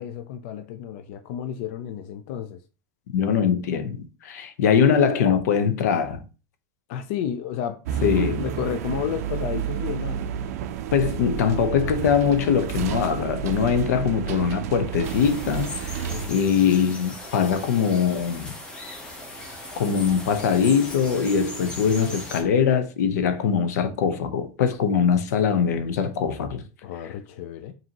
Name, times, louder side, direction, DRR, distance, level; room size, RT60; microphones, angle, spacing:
voice 1, 0.0-2.6 6.9-7.8 8.4-10.2 16.1-16.5 26.8-27.7, left 9 dB, 50° left, 0.4 m, -32 dB
voice 2, 3.1-6.2 8.0-8.5 10.9-18.6 19.8-26.6, left 7 dB, 90° left, 0.7 m, -22 dB
sound 1, 7.9-16.3, right 9 dB, 65° right, 0.4 m, -30 dB
sound 2, 15.0-22.4, left 1 dB, 10° left, 0.7 m, -38 dB
5.1 x 2.7 x 2.9 m
supercardioid pair, 180°, 9 cm